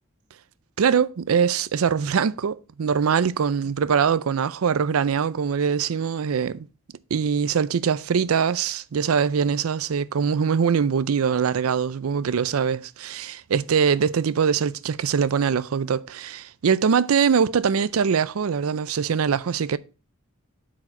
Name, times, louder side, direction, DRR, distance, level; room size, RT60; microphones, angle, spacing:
voice 1, 0.8-6.7 7.1-19.8, right 6 dB, 90° right, 0.4 m, -22 dB
7.8 x 4.9 x 4.3 m
head